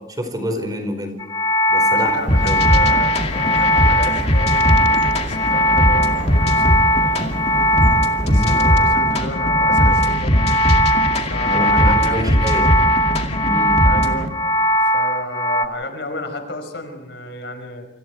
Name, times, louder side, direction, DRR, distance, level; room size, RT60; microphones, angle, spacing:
voice 1, 0.1-1.1 1.7-2.6 8.2-8.6 11.4-12.7 13.4-13.8, equal, 20° right, 6 dB, 4.8 m, -26 dB
sound 1, 1.2-15.7, equal, 20° left, 1.0 m, -19 dB
voice 2, 1.9-6.7 7.0-7.3 8.1-10.5 11.1-12.8 13.8-14.3 14.8-17.9, left 2 dB, 70° left, 6 dB, 5.0 m, -32 dB
sound 2, 2.0-9.0, right 2 dB, 80° right, 2.3 m, -37 dB
sound 3, 2.3-14.3, equal, 35° left, 2.4 m, -20 dB
29.5 x 26.0 x 4.7 m, 1.1 s
head